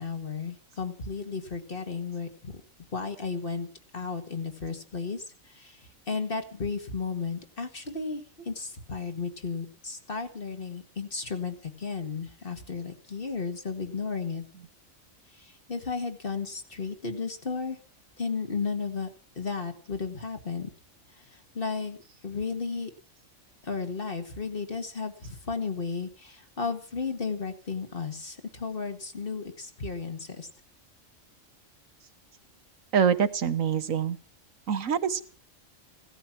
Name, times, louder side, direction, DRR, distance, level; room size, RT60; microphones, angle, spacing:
voice 1, 0.0-2.6 2.9-3.7 3.9-5.8 6.1-14.4 15.4-17.8 18.2-19.1 19.4-20.7 21.5-22.0 22.2-22.9 23.6-30.5, left 5 dB, 45° left, 6 dB, 2.0 m, -34 dB
voice 2, 32.9-34.2 34.7-35.2, right 7 dB, 80° right, 11 dB, 1.5 m, -25 dB
17.0 x 13.5 x 6.0 m, 0.39 s
omnidirectional pair, 1.4 m